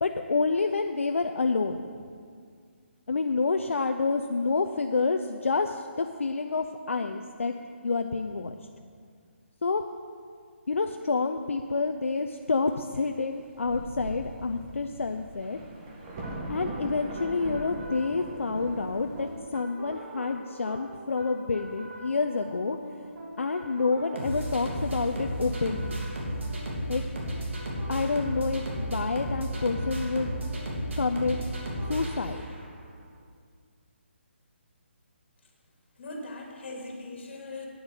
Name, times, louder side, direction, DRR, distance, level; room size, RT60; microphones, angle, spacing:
voice 1, 0.0-1.8 3.1-7.5 7.8-8.6 9.6-9.8 10.7-15.6 16.5-22.8 23.4-26.0 26.9-27.0 27.9-30.3 31.0-31.4 31.9-32.4, left 4 dB, 85° left, 6 dB, 0.6 m, -28 dB
Thunder, 13.2-13.3 13.6-19.4, right 1 dB, 25° right, 1.7 m, -40 dB
sound 1, 16.2-32.8, right 1 dB, 70° right, 3.0 m, -35 dB
voice 2, 36.0-37.7, left 2 dB, 60° left, 0 dB, 2.9 m, -40 dB
9.4 x 7.9 x 8.1 m, 2.1 s
hypercardioid pair, 160°, 7 cm